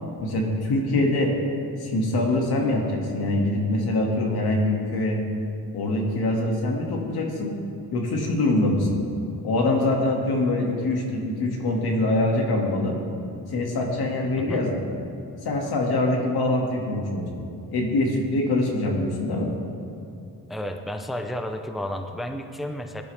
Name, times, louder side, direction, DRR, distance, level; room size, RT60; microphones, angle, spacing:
voice 1, 0.2-1.3 1.8-5.2 5.7-7.6 7.9-9.0 9.4-13.0 13.5-14.8 15.4-17.4 17.7-19.5, left 2 dB, 80° left, 0 dB, 2.3 m, -24 dB
voice 2, 20.5-23.0, left 1 dB, ahead, 5 dB, 0.7 m, -31 dB
19.0 x 11.5 x 3.5 m, 2.6 s
cardioid pair, 110°, 37 cm